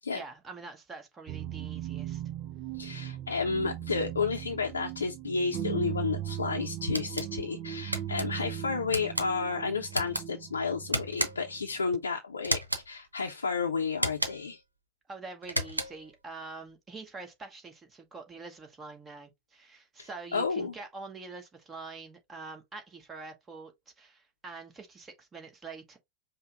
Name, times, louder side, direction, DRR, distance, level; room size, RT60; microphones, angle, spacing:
voice 1, 0.1-2.2 15.1-26.0, right 4 dB, 20° right, 1.2 m, -45 dB
sound 1, 1.3-12.0, right 12 dB, 40° right, 0.4 m, -38 dB
voice 2, 2.7-12.6 12.9-14.6 20.0-20.7, left 5 dB, 75° left, 0.6 m, -32 dB
sound 2, 6.9-7.3 7.9-8.3 8.9-9.3 9.9-10.2 10.9-11.5 12.4-12.9 13.9-14.5 15.4-16.1, right 1 dB, 85° right, 0.7 m, -32 dB
5.3 x 2.0 x 3.6 m
figure-of-eight pair, 90°, 0 cm